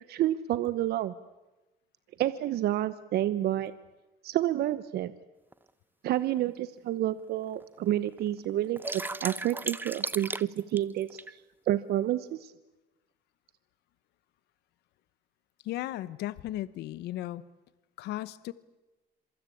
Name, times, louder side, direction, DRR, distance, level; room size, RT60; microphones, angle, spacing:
voice 1, 0.1-1.1 2.2-3.7 4.2-5.1 6.0-11.2 11.7-12.5, right 13 dB, 70° right, 13 dB, 1.1 m, -29 dB
sound 1, 5.5-5.6 6.4-6.5 6.9-7.0 7.2-7.8 8.2-11.3, right 2 dB, 10° right, 0.9 m, -35 dB
voice 2, 15.6-17.4 18.0-18.5, left 14 dB, 80° left, 16 dB, 1.0 m, -35 dB
27.0 x 24.5 x 8.5 m, 1.1 s
cardioid pair, 110°, 17 cm